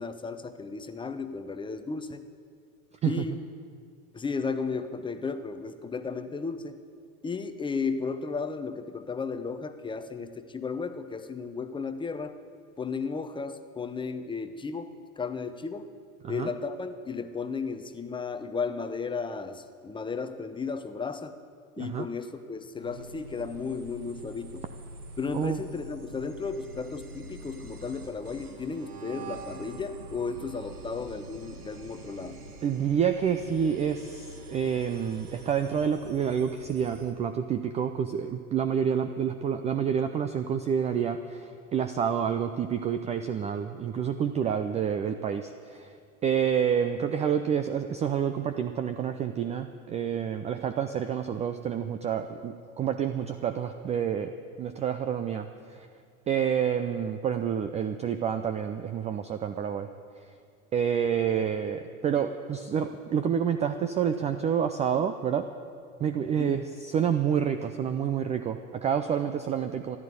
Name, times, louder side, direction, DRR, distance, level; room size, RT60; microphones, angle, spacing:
voice 1, 0.0-2.2 3.0-3.5 4.1-6.8 7.2-12.3 12.8-15.9 16.3-21.3 21.8-24.6 25.2-32.4 62.2-62.3 66.2-66.5, left 4 dB, 10° left, 9 dB, 0.8 m, -34 dB
sound 1, 22.8-37.1, right 2 dB, 80° right, 1.8 m, -45 dB
voice 2, 32.6-45.9 46.2-54.3 54.6-55.9 56.3-59.9 60.7-65.5 66.0-70.0, right 8 dB, 15° right, 9 dB, 0.4 m, -28 dB
15.0 x 11.0 x 8.2 m, 2.2 s
hypercardioid pair, 95°, 44 cm